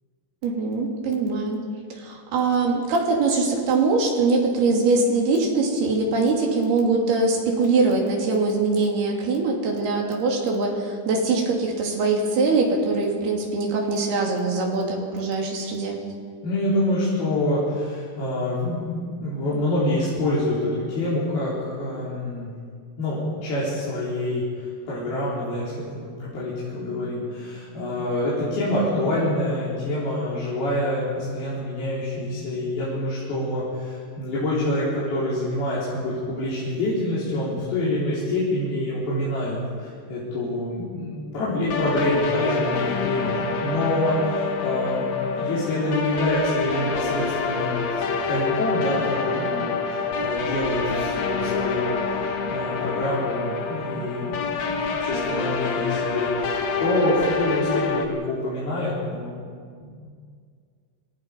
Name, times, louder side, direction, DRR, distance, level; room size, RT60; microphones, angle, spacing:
voice 1, 0.4-1.6 1.9-16.0, right 3 dB, 60° right, -1 dB, 4.6 m, -22 dB
voice 2, 16.4-22.5 23.0-45.1 45.4-47.8 48.3-59.3 59.8-60.1, left 1 dB, 55° left, -9 dB, 6.0 m, -26 dB
sound 1, 41.7-58.1, left 4 dB, 75° left, 1.5 m, -27 dB
27.0 x 18.0 x 5.4 m, 2.1 s
omnidirectional pair, 5.4 m